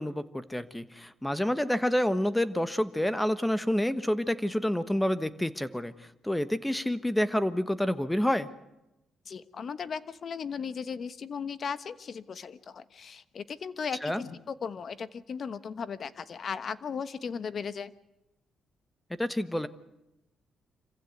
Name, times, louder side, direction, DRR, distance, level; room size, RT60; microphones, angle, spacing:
voice 1, 0.0-8.5 14.0-14.2 19.2-19.7, left 1 dB, 5° left, 14 dB, 1.3 m, -28 dB
voice 2, 9.3-17.9, left 6 dB, 50° left, 15 dB, 1.2 m, -37 dB
26.5 x 15.5 x 9.4 m, 0.93 s
cardioid pair, 90°, 0 cm